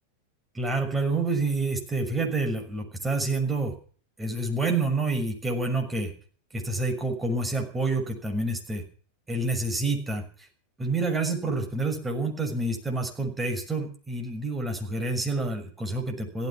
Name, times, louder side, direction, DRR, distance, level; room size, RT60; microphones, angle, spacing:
voice 1, 0.5-3.7 4.2-6.1 6.5-8.8 9.3-10.2 10.8-16.5, right 2 dB, 10° right, 4 dB, 6.3 m, -28 dB
17.0 x 14.0 x 6.0 m, 0.43 s
figure-of-eight pair, 90°, 0 cm